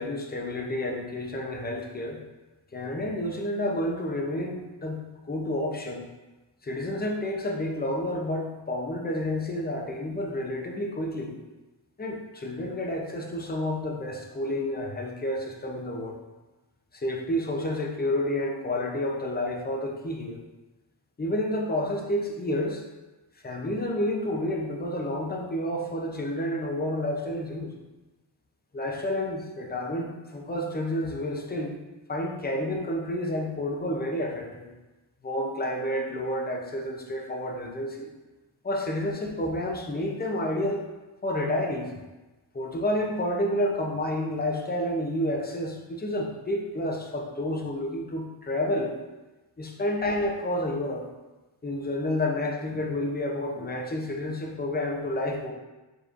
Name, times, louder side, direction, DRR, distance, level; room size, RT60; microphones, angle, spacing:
voice 1, 0.0-2.2 2.7-5.0 5.2-6.0 6.6-11.3 12.0-16.2 16.9-20.4 21.2-22.8 23.4-27.7 28.7-31.8 32.1-34.7 35.2-38.1 38.6-40.8 41.2-41.9 42.5-49.0 49.6-51.0 51.6-55.5, left 1 dB, 20° left, 1 dB, 0.5 m, -30 dB
5.0 x 3.0 x 2.4 m, 1.1 s
wide cardioid pair, 95°, 45 cm